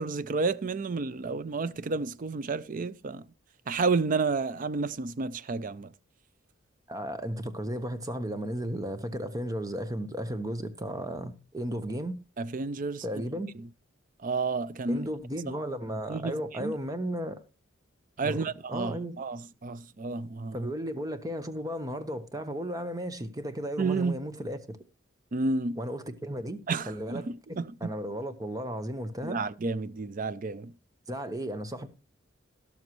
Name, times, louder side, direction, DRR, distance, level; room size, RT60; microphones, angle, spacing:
voice 1, 0.0-3.3 3.7-5.9 12.4-13.0 13.6-13.7 14.2-15.1 16.1-16.8 18.2-20.7 23.8-24.2 25.3-25.8 26.7-27.9 29.2-30.7, right 4 dB, 40° right, 0.5 m, -31 dB
voice 2, 6.9-12.2 13.0-13.5 14.9-17.4 18.2-19.2 20.5-24.8 25.8-26.6 26.9-29.4 31.1-31.9, equal, 20° right, 1.0 m, -34 dB
12.5 x 12.0 x 3.1 m
head